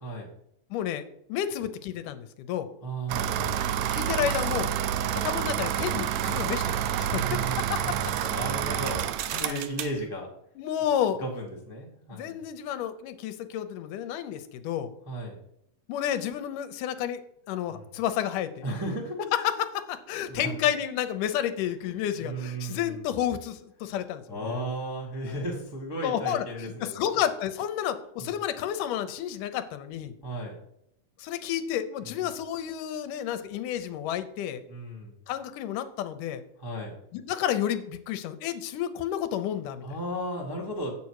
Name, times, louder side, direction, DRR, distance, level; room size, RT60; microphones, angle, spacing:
voice 1, 0.7-1.0 1.3-2.7 3.9-4.7 5.2-8.1 8.7-9.1 9.3-9.7 10.6-11.2 12.1-14.9 15.9-17.2 17.5-18.5 19.3-24.6 25.2-25.4 26.0-30.1 31.2-34.6 35.3-36.4 37.1-39.8, left 10 dB, 80° left, 11 dB, 2.2 m, -31 dB
voice 2, 2.8-3.6 6.9-9.0 9.4-10.3 11.2-12.4 15.0-15.4 17.7-17.9 18.6-19.3 20.3-20.7 21.8-23.0 24.3-26.9 28.2-28.3 30.2-30.5 32.0-32.3 34.7-35.2 36.6-36.9 39.8-40.9, right 1 dB, 15° right, -2 dB, 0.8 m, -35 dB
sound 1, 3.1-10.0, right 10 dB, 80° right, 1.6 m, -28 dB
8.4 x 6.8 x 4.7 m, 0.76 s
omnidirectional pair, 3.7 m